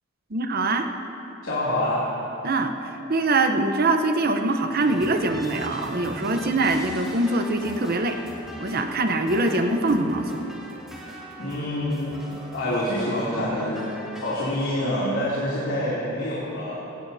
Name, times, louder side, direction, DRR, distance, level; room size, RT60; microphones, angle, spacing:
voice 1, 0.3-0.9 2.4-8.2 8.6-10.5, right 2 dB, 50° right, 6 dB, 0.8 m, -23 dB
voice 2, 1.4-2.0 11.4-13.9 14.2-16.8, left 1 dB, 80° left, -9 dB, 2.8 m, -26 dB
sound 1, 4.8-14.5, equal, 5° right, 2.2 m, -40 dB
17.0 x 17.0 x 2.7 m, 3.0 s
head